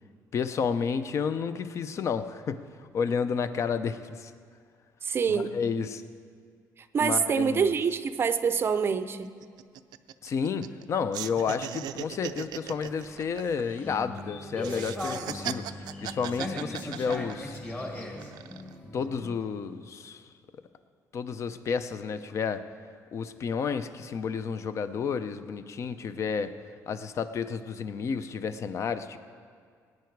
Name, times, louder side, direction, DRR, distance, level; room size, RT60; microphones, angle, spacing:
voice 1, 0.3-4.3 5.3-6.0 7.0-7.7 10.2-17.6 18.9-20.2 21.1-22.6 23.1-26.5 26.9-29.2, left 6 dB, 45° left, 11 dB, 0.6 m, -31 dB
voice 2, 5.0-5.6 6.9-9.3, right 6 dB, 35° right, 12 dB, 0.5 m, -26 dB
sound 1, 8.3-8.4 8.7-8.9 9.2-10.8 11.1-14.2 14.6-17.7 18.2-18.7, right 12 dB, 85° right, 0.4 m, -38 dB
sound 2, 12.6-19.4, left 1 dB, 25° left, 1.9 m, -38 dB
18.5 x 9.6 x 4.6 m, 2.1 s
cardioid pair, 140°, 7 cm